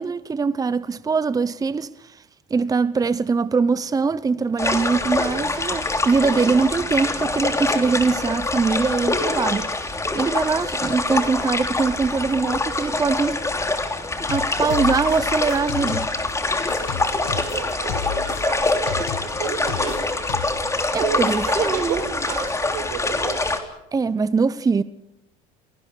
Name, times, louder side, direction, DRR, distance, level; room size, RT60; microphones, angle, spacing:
voice 1, 0.0-2.2 2.5-9.7 10.1-13.4 14.3-16.1 20.9-22.0 23.9-24.8, right 4 dB, 20° right, 0.8 m, -22 dB
sound 1, 4.6-23.6, left 2 dB, 15° left, 3.3 m, -25 dB
sound 2, 14.3-16.3 16.7-20.7, left 12 dB, 85° left, 1.4 m, -33 dB
voice 2, 17.2-20.1 21.0-23.4, right 8 dB, 80° right, 6.0 m, -32 dB
28.0 x 19.0 x 6.8 m
supercardioid pair, 80°, 17 cm